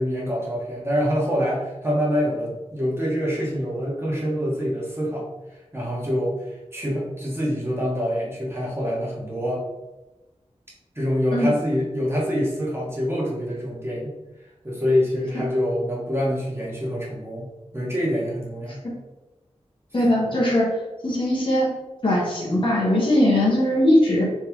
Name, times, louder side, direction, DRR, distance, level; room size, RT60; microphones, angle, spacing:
voice 1, 0.0-5.3 5.7-6.4 6.7-9.6 10.9-14.1 14.6-18.8, equal, 20° right, -5 dB, 1.3 m, -25 dB
voice 2, 19.9-20.7 21.0-21.7 22.0-24.2, left 1 dB, 45° left, -5 dB, 1.3 m, -20 dB
3.5 x 3.2 x 3.1 m, 1.0 s
wide cardioid pair, 80°, 12 cm